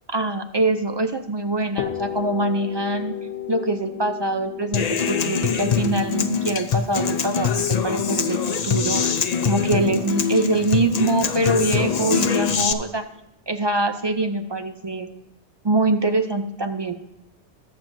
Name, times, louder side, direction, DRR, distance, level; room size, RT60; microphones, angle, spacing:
voice 1, 0.1-3.1 3.5-9.0 9.4-13.0 13.5-15.1 15.6-16.9, right 2 dB, 40° right, 8 dB, 0.4 m, -24 dB
sound 1, 1.8-9.5, left 10 dB, 80° left, 1.1 m, -34 dB
Human voice / Acoustic guitar, 4.7-12.7, left 6 dB, 50° left, 0.5 m, -23 dB
20.5 x 7.3 x 2.6 m, 0.91 s
omnidirectional pair, 1.2 m